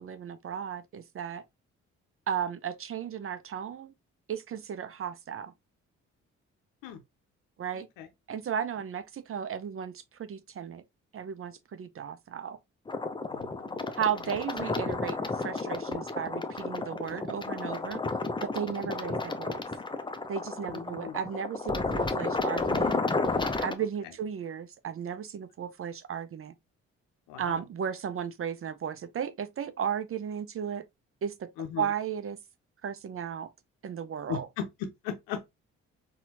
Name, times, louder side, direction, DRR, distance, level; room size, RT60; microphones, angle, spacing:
voice 1, 0.0-1.4 2.3-3.9 4.3-5.5 7.6-7.9 8.3-10.8 11.1-12.6 14.0-18.0 18.4-19.6 20.3-23.0 23.6-26.5 27.4-30.8 31.2-31.5 31.8-32.4 32.8-33.5 33.8-34.5, right 8 dB, 40° right, 0.5 m, -35 dB
voice 2, 7.7-8.1 13.3-13.9 14.3-14.4 20.7-21.2 27.3-27.6 31.6-31.9 34.3-35.5, left 8 dB, 75° left, 0.7 m, -38 dB
sound 1, 12.9-23.7, left 3 dB, 15° left, 0.6 m, -32 dB
4.1 x 2.3 x 2.8 m
hypercardioid pair, 45°, 35 cm